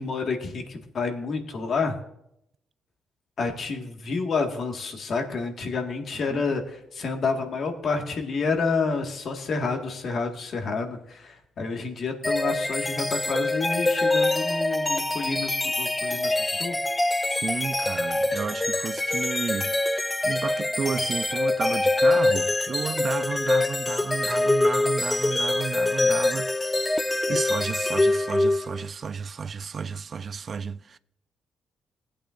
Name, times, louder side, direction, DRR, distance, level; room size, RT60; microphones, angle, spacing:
voice 1, 0.0-2.0 3.4-16.8, left 4 dB, 60° left, 1.7 m, -29 dB
sound 1, 12.2-28.9, left 2 dB, 20° left, 0.5 m, -25 dB
voice 2, 17.3-31.0, right 5 dB, 50° right, 0.4 m, -32 dB
18.0 x 8.6 x 2.6 m
hypercardioid pair, 50°, 0 cm